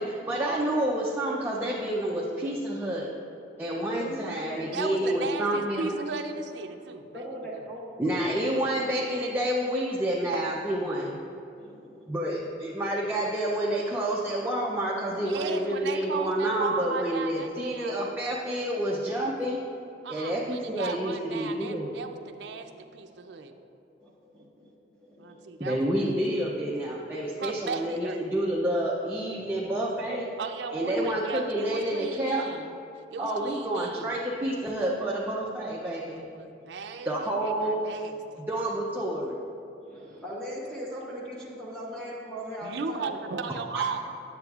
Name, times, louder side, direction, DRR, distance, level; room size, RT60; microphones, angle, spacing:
voice 1, 0.0-3.1 3.6-5.9 8.0-11.2 12.1-19.6 20.1-21.9 25.6-30.3 30.7-32.5 33.2-36.2 37.1-37.8 38.5-39.4 43.7-43.8, right 1 dB, 10° right, -4 dB, 0.4 m, -29 dB
voice 2, 4.1-5.1 6.1-6.2 7.1-8.4 11.5-12.2 24.0-25.4 33.1-33.3 39.8-43.2, equal, 5° left, -6 dB, 0.9 m, -40 dB
voice 3, 4.7-7.3 7.5-7.6 15.2-17.9 20.0-23.5 24.4-24.5 25.2-26.2 26.5-26.8 27.4-28.2 30.4-32.7 33.1-34.1 36.3-38.4 42.6-44.0, right 4 dB, 70° right, 6 dB, 0.4 m, -36 dB
9.3 x 7.6 x 2.4 m, 2.8 s
head